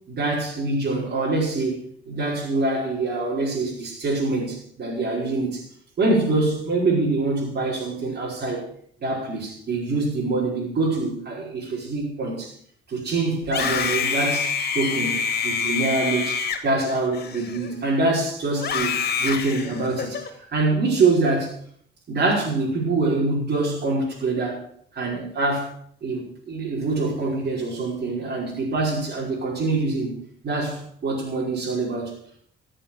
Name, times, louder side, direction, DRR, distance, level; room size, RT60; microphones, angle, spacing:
voice 1, 0.1-5.7 6.0-8.7 9.0-12.5 12.9-20.2 20.5-21.5 22.1-25.7 26.0-30.2 30.4-32.1, right 3 dB, 55° right, -5 dB, 5.6 m, -25 dB
Screaming, 13.4-17.9 18.6-20.3, left 6 dB, 50° left, 2.3 m, -26 dB
15.0 x 7.9 x 7.5 m, 0.62 s
cardioid pair, 90°, 20 cm